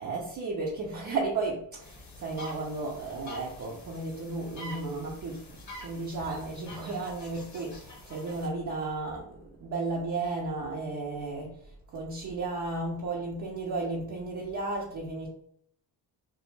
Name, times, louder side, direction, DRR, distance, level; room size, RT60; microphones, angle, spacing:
voice 1, 0.0-5.4 5.8-11.5 11.9-15.3, right 3 dB, 40° right, -3 dB, 0.6 m, -34 dB
sound 1, 1.8-8.5, left 1 dB, 35° left, 1.0 m, -47 dB
2.2 x 2.0 x 3.1 m, 0.65 s
supercardioid pair, 60°, 47 cm